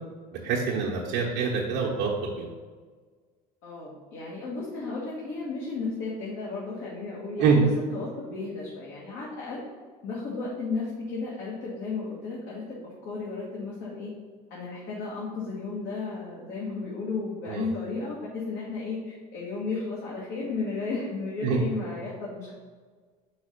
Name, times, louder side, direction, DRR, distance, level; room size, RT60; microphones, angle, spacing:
voice 1, 0.3-2.5 7.4-7.6 17.5-17.7 21.4-21.6, right 5 dB, 60° right, -4 dB, 1.1 m, -25 dB
voice 2, 3.6-7.7 7.9-9.6 10.0-14.1 14.5-22.5, left 4 dB, 55° left, -5 dB, 1.6 m, -34 dB
4.9 x 4.0 x 5.1 m, 1.5 s
hypercardioid pair, 80°, 21 cm